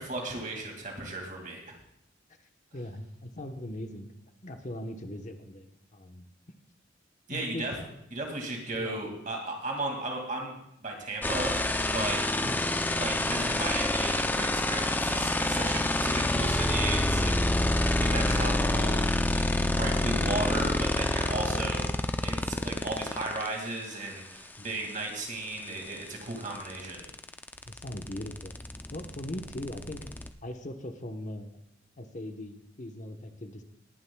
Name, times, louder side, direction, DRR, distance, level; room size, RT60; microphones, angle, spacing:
voice 1, 0.0-1.6 7.3-7.7 8.1-12.2 13.0-17.7 18.1-19.0 19.3-19.4 19.7-21.9 22.2-27.1, right 2 dB, 40° right, 1 dB, 2.2 m, -35 dB
voice 2, 2.7-4.1 4.4-6.3 7.3-7.7 8.7-9.0 12.4-12.8 15.6-16.0 20.2-20.7 24.6-24.8 27.7-28.6 28.9-30.1 30.4-31.5 32.0-33.6, left 1 dB, 40° left, 5 dB, 1.0 m, -40 dB
sound 1, 11.2-23.5 25.6-25.7 25.9-30.3, left 1 dB, 10° left, 0.5 m, -27 dB
20.0 x 10.5 x 2.3 m, 0.80 s
head